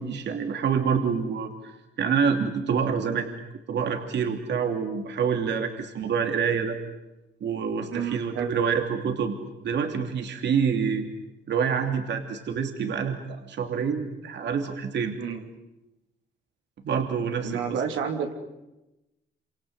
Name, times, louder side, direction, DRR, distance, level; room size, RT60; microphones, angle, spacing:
voice 1, 0.0-1.7 2.0-3.3 3.7-6.8 7.4-9.4 9.6-11.0 11.5-15.1 16.8-17.8, right 6 dB, 65° right, 5 dB, 2.9 m, -27 dB
voice 2, 7.9-8.5 15.2-15.4 17.4-18.3, right 7 dB, 85° right, 4 dB, 3.2 m, -30 dB
28.0 x 26.5 x 8.2 m, 0.97 s
cardioid pair, 90°, 20 cm